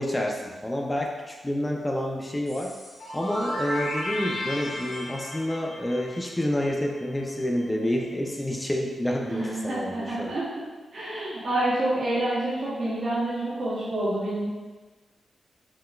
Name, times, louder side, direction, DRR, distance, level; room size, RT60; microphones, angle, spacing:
voice 1, 0.0-2.7 3.1-10.3, left 1 dB, 15° left, 0 dB, 0.3 m, -28 dB
sound 1, 2.5-7.2, left 1 dB, 60° left, 0.9 m, -34 dB
voice 2, 9.3-10.5 10.9-14.5, right 1 dB, 60° right, -9 dB, 0.8 m, -28 dB
3.9 x 2.1 x 2.2 m, 1.3 s
cardioid pair, 85°, 0 cm